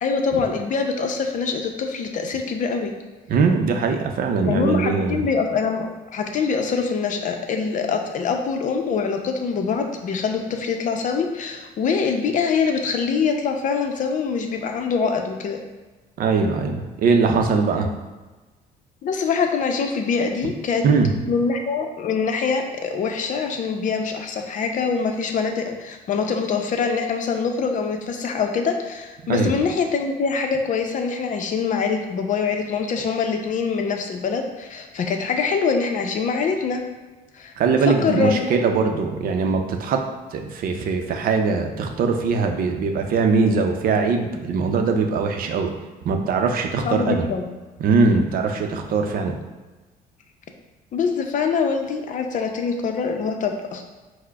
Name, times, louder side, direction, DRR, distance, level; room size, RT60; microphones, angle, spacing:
voice 1, 0.0-2.9 4.4-15.6 19.0-20.8 21.3-36.8 37.3-37.5 37.9-38.5 46.8-47.5 50.9-53.9, left 5 dB, 50° left, 4 dB, 0.6 m, -24 dB
voice 2, 3.3-5.2 16.2-17.9 20.8-21.1 29.3-29.5 37.6-40.0 40.3-45.7 46.0-47.3 47.8-49.3, right 4 dB, 60° right, 4 dB, 0.6 m, -21 dB
4.5 x 2.1 x 4.6 m, 1.2 s
cardioid pair, 110°, 17 cm